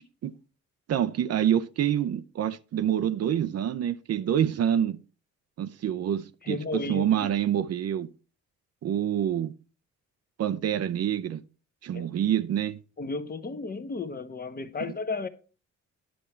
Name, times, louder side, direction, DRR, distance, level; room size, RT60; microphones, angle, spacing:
voice 1, 0.9-5.0 5.6-8.1 8.8-9.5 10.4-11.4 11.8-12.8, right 10 dB, 55° right, 0.6 m, -27 dB
voice 2, 6.4-7.3 11.9-12.1 13.0-15.3, left 3 dB, 30° left, 1.0 m, -33 dB
10.5 x 7.1 x 4.4 m
cardioid pair, 90°, 30 cm